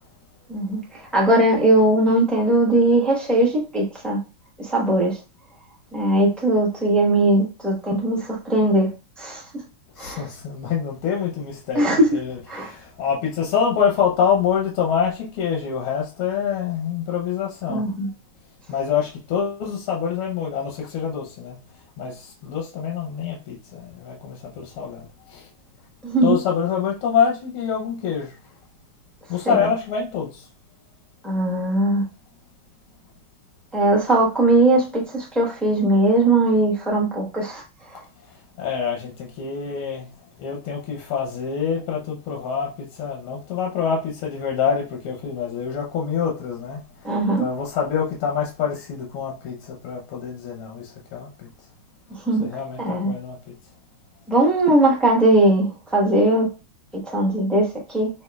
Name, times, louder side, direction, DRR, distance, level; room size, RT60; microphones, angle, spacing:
voice 1, 0.5-4.2 4.6-5.2 5.9-8.9 9.2-9.4 10.0-10.3 11.7-12.1 12.5-12.7 17.7-18.1 26.0-26.3 29.5-29.7 31.2-32.0 33.7-37.6 47.0-47.5 52.1-52.5 52.8-53.1 54.3-56.5 57.1-58.1, right 1 dB, ahead, 0.4 m, -19 dB
voice 2, 10.0-17.9 18.7-21.6 22.0-25.5 26.2-28.4 29.3-30.5 37.9-40.1 40.4-51.5 52.4-53.5, left 7 dB, 85° left, 1.7 m, -26 dB
6.3 x 2.7 x 2.3 m
omnidirectional pair, 2.3 m